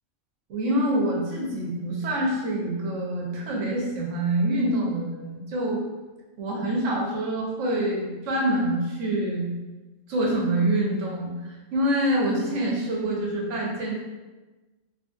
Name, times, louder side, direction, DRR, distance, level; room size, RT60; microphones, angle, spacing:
voice 1, 0.5-5.8 6.4-9.5 10.1-13.9, right 1 dB, 70° right, -2 dB, 1.0 m, -26 dB
3.1 x 2.5 x 2.4 m, 1.2 s
omnidirectional pair, 1.4 m